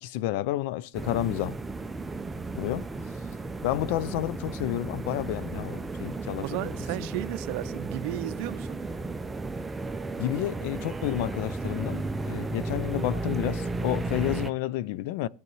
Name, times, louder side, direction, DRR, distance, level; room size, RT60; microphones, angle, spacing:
voice 1, 0.0-1.6 2.6-2.9 3.6-6.8 10.2-15.3, left 14 dB, 65° left, 0.4 m, -30 dB
sound 1, 0.9-14.5, right 2 dB, 15° right, 0.6 m, -34 dB
voice 2, 6.4-8.8, right 17 dB, 60° right, 0.5 m, -34 dB
15.5 x 8.6 x 3.2 m
supercardioid pair, 110°, 0 cm